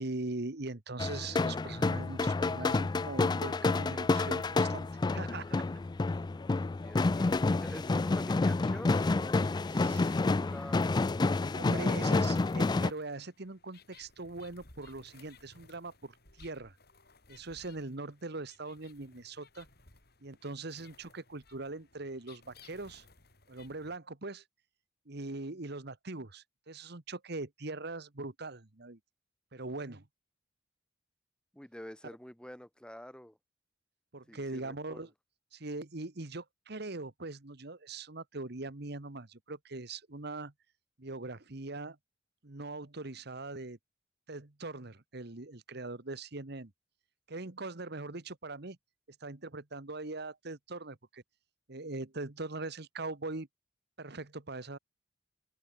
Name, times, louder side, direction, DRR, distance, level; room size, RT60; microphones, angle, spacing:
voice 1, 0.0-5.6 9.7-10.1 11.6-16.8 17.3-19.7 20.2-23.0 23.5-24.4 25.1-29.0 29.5-30.0 34.1-35.1 35.5-40.5 41.0-42.0 42.4-43.8 44.3-46.7 47.3-48.8 49.2-51.2 51.7-53.5 54.0-54.8, right 2 dB, 60° right, 1.6 m, -41 dB
sound 1, 1.0-12.9, left 3 dB, 25° left, 0.3 m, -29 dB
voice 2, 6.6-11.1 31.5-33.4 34.3-35.1, equal, 5° left, 1.1 m, -48 dB
sound 2, 7.0-24.0, left 4 dB, 60° left, 7.4 m, -60 dB
open air
head